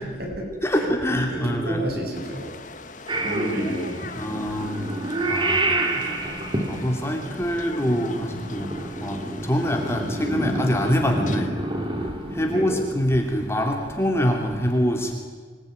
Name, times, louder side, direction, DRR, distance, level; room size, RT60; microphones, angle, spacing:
voice 1, 0.6-1.8 4.2-4.9 5.3-6.3 6.6-8.7 9.0-15.1, equal, 15° left, 2 dB, 2.9 m, -25 dB
voice 2, 1.3-2.5 3.2-4.1 12.5-12.8, right 1 dB, 55° right, 1 dB, 7.8 m, -29 dB
sound 1, 2.1-11.5, left 3 dB, 45° left, 1.5 m, -41 dB
Purr / Meow, 3.1-13.0, right 2 dB, 25° right, 2.7 m, -29 dB
26.0 x 20.5 x 9.6 m, 1.5 s
head